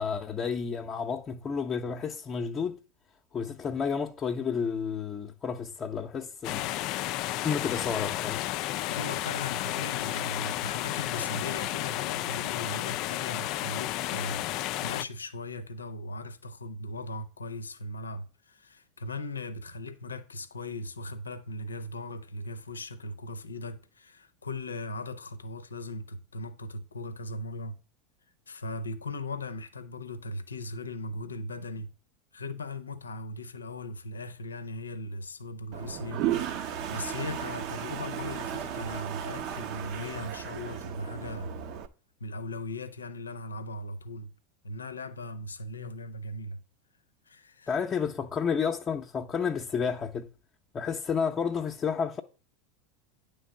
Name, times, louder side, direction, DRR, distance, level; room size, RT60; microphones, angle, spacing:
voice 1, 0.0-2.8 3.3-6.7 7.1-8.5 47.7-50.3 50.7-52.2, left 6 dB, 30° left, 0.7 m, -31 dB
sound 1, 6.4-15.0, left 15 dB, 55° left, 0.3 m, -32 dB
voice 2, 8.8-14.4 14.8-27.8 28.5-31.9 32.3-41.6 42.2-44.3 44.6-46.6 47.3-47.8, left 2 dB, 90° left, 0.6 m, -38 dB
Toilet flush, 35.7-41.9, right 10 dB, 55° right, 0.8 m, -35 dB
9.5 x 3.4 x 6.9 m
hypercardioid pair, 85°, 0 cm